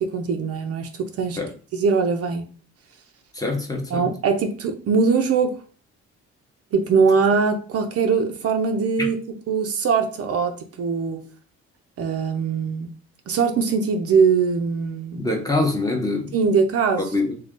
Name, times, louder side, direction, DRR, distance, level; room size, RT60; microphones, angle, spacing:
voice 1, 0.0-1.4 1.7-2.5 3.9-5.6 6.7-9.2 9.5-11.2 12.0-12.9 13.3-15.3 16.3-17.1, right 5 dB, 55° right, 0.5 m, -21 dB
voice 2, 3.3-4.1 9.0-9.1 15.2-16.3 17.1-17.3, left 2 dB, 10° left, 0.7 m, -24 dB
2.5 x 2.2 x 3.6 m
cardioid pair, 90°, 30 cm